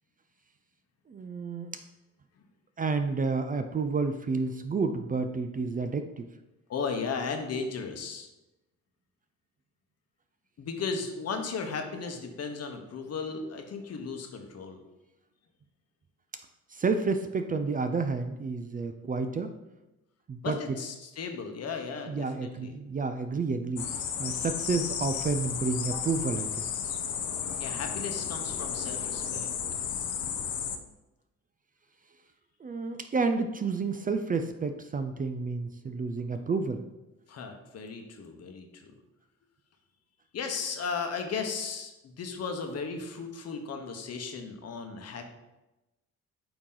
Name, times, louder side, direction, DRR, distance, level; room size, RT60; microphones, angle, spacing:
voice 1, 1.1-1.7 2.8-6.3 16.7-19.5 20.3-20.8 22.1-26.7 32.6-36.9, right 4 dB, 30° right, 8 dB, 0.4 m, -30 dB
voice 2, 6.7-8.3 10.6-14.8 20.4-22.7 27.6-29.5 37.3-38.9 40.3-45.2, left 5 dB, 55° left, 5 dB, 1.0 m, -35 dB
sound 1, 23.8-30.8, left 8 dB, 75° left, 0.6 m, -33 dB
8.7 x 3.0 x 3.8 m, 1.0 s
cardioid pair, 90°, 30 cm